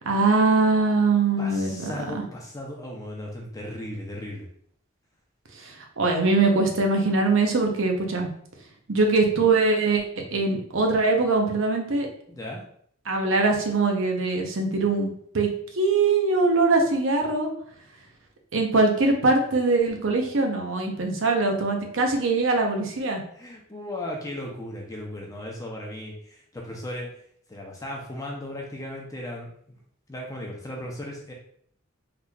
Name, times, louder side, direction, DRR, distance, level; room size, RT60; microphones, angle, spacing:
voice 1, 0.1-2.2 5.6-8.3 8.9-10.0 10.3-12.1 13.1-15.5 15.7-17.5 18.5-23.2, right 3 dB, 75° right, 2 dB, 0.7 m, -22 dB
voice 2, 1.4-4.5 12.3-12.6 23.3-27.1 27.5-29.5 30.1-31.3, left 1 dB, 15° left, -1 dB, 0.6 m, -36 dB
3.9 x 3.1 x 2.3 m, 0.63 s
head